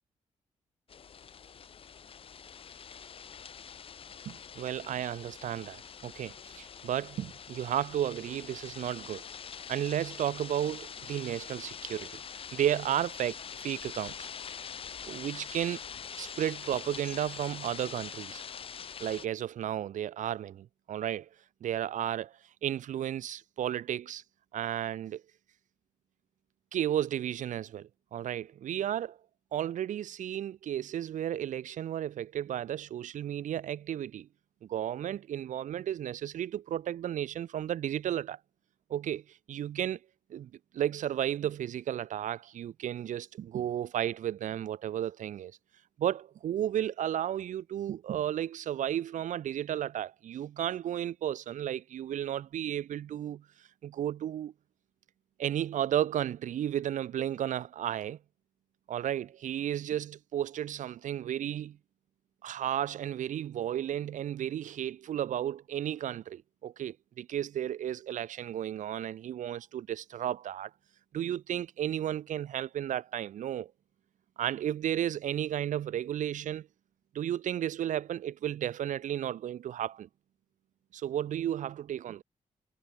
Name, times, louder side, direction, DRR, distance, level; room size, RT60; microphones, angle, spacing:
sound 1, 0.9-19.3, left 7 dB, 45° left, 2.1 m, -44 dB
voice 1, 4.2-9.3 9.7-12.2 12.5-14.3 15.0-15.8 16.2-18.4 19.0-21.3 21.6-22.3 22.6-24.2 24.5-25.2 26.7-29.2 29.5-34.3 34.7-38.4 38.9-39.2 39.5-40.0 40.3-45.5 46.0-53.4 53.8-54.5 55.4-58.2 58.9-61.8 62.4-70.7 71.1-73.7 74.4-76.7 77.1-80.1 80.9-82.2, right 11 dB, 85° right, 1.3 m, -33 dB
wide cardioid pair, 165°, 13 cm